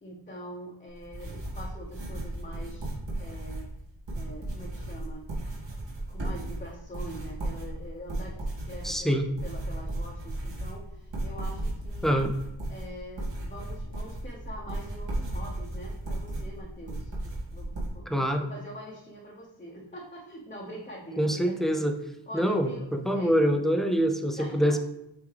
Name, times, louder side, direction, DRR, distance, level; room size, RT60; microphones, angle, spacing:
voice 1, 0.0-3.7 4.1-5.3 6.1-12.2 12.7-21.8 22.3-23.4 24.4-24.7, equal, 15° left, -4 dB, 0.8 m, -44 dB
sound 1, 0.9-17.9, right 1 dB, 60° right, 1.9 m, -35 dB
voice 2, 8.8-9.3 12.0-12.3 18.1-18.5 21.2-22.0 22.3-24.8, equal, ahead, 5 dB, 0.4 m, -25 dB
8.2 x 3.5 x 3.3 m, 0.85 s
wide cardioid pair, 150°, 48 cm